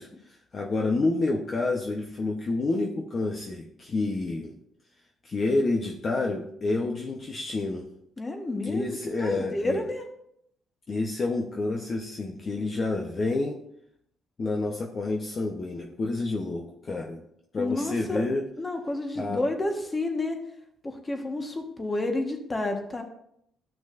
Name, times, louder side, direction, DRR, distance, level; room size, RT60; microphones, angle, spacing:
voice 1, 0.0-4.5 5.2-7.9 8.7-9.8 10.9-13.6 14.4-17.2 17.5-18.5 19.2-19.4, left 2 dB, 35° left, 1 dB, 0.9 m, -29 dB
voice 2, 8.2-10.0 17.6-18.3 18.6-20.4 20.8-23.0, left 2 dB, 20° left, 4 dB, 1.4 m, -30 dB
13.5 x 6.1 x 2.6 m, 0.72 s
cardioid pair, 125°, 0 cm